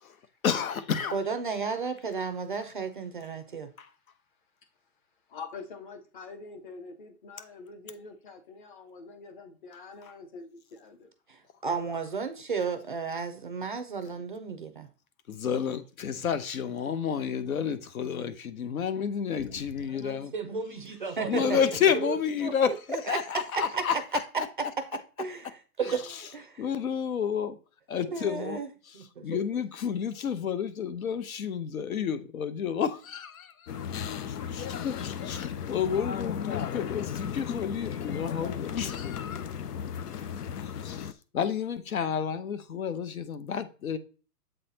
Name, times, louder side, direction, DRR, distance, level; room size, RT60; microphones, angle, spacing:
voice 1, 0.4-1.2 3.8-3.9 10.0-10.1 15.3-20.3 21.3-23.9 25.8-26.2 26.6-27.6 27.9-28.6 28.9-29.0 29.2-33.7 34.0-39.5 40.6-44.0, left 7 dB, 65° left, 0.9 m, -30 dB
voice 2, 1.1-3.7 11.3-14.9 19.9-21.6 22.0-22.2 22.4-22.7 23.0-23.2 23.5-24.0 25.2-26.6 28.1-28.7 28.9-29.4, right 5 dB, 35° right, 0.5 m, -33 dB
voice 3, 5.3-11.1, left 4 dB, 30° left, 1.0 m, -45 dB
sound 1, 19.3-20.2 21.3-21.4 22.0-22.1 22.3-22.7, left 8 dB, 50° left, 0.5 m, -46 dB
sound 2, 33.7-41.1, left 8 dB, 85° left, 0.8 m, -35 dB
7.7 x 4.0 x 3.9 m
hypercardioid pair, 170°, 46 cm